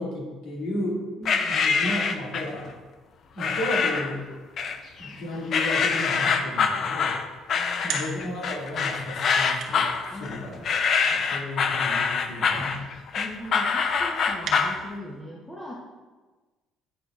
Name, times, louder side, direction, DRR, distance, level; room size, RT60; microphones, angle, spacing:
voice 1, 0.0-1.0 1.5-2.7 3.3-4.2 5.0-7.2 7.8-10.6 11.1-12.9, left 1 dB, 75° left, -4 dB, 2.2 m, -33 dB
voice 2, 1.2-1.6 7.5-8.0 10.1-10.7 13.1-15.8, equal, 5° left, -5 dB, 0.8 m, -40 dB
sound 1, 1.3-2.6 3.4-4.2 4.6-5.2 5.5-14.8, left 5 dB, 45° left, 0.4 m, -25 dB
sound 2, 7.1-15.2, right 5 dB, 65° right, 1.1 m, -42 dB
9.1 x 6.6 x 2.4 m, 1.3 s
cardioid pair, 150°, 0 cm